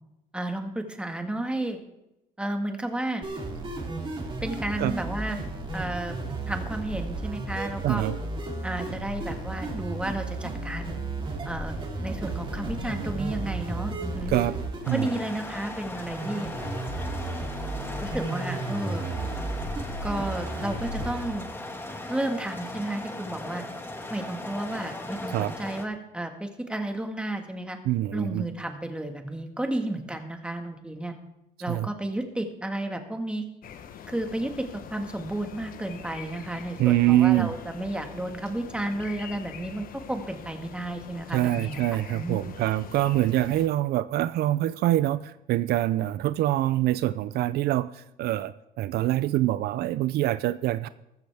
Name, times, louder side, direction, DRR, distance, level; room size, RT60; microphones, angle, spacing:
voice 1, 0.3-1.8 2.4-3.3 4.4-5.4 5.7-6.1 6.5-8.0 8.6-11.0 11.4-14.3 14.9-16.5 18.0-19.0 20.0-21.5 22.1-23.6 24.1-27.8 28.1-31.1 31.6-33.4 34.1-41.8 42.1-42.4, right 1 dB, 5° right, 5 dB, 1.7 m, -32 dB
sound 1, 3.2-21.2, right 2 dB, 30° right, 3.3 m, -33 dB
voice 2, 7.8-8.2 14.3-14.5 14.9-15.1 25.3-25.5 27.9-28.4 31.7-31.9 36.8-37.5 41.3-50.9, right 14 dB, 70° right, 15 dB, 0.5 m, -25 dB
sound 2, 14.8-25.8, left 2 dB, 15° left, 1.6 m, -38 dB
sound 3, 33.6-43.7, left 8 dB, 55° left, 1.0 m, -44 dB
14.0 x 14.0 x 3.5 m, 0.88 s
cardioid pair, 110°, 17 cm